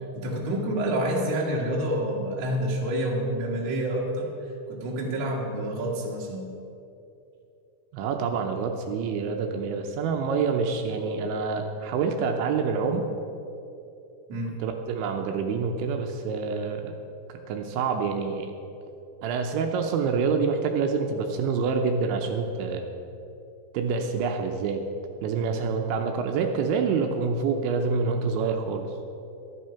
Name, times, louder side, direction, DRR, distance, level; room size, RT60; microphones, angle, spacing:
voice 1, 0.2-4.3 4.7-6.5 14.3-14.5, right 1 dB, 55° right, -2 dB, 2.5 m, -28 dB
voice 2, 7.9-13.1 14.6-16.9 17.5-18.5 19.2-22.9 23.7-24.8 25.2-28.9, right 5 dB, 80° right, 4 dB, 3.0 m, -27 dB
12.5 x 10.5 x 5.7 m, 2.8 s
omnidirectional pair, 5.4 m